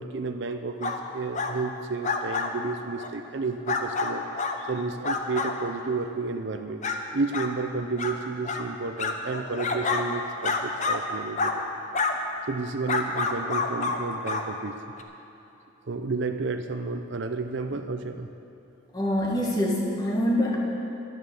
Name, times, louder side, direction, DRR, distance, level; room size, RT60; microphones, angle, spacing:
voice 1, 0.0-4.2 4.6-6.8 7.1-11.7 12.5-14.8 15.9-18.3, right 4 dB, 55° right, 7 dB, 0.5 m, -31 dB
sound 1, 0.8-1.0 1.3-1.5 2.0-2.5 3.0-3.1 3.7-4.6 5.0-5.5 6.1-6.2 6.8-7.0 7.3-7.5 8.0-8.1 8.4-8.6 9.0-10.0 10.4-11.0 11.4-11.6 11.9-12.2 12.9-14.0 14.2-14.4 15.0-15.1, left 4 dB, 35° left, 0.8 m, -27 dB
voice 2, 18.9-20.6, left 1 dB, 20° left, -3 dB, 1.8 m, -25 dB
12.0 x 11.0 x 7.0 m, 2.8 s
head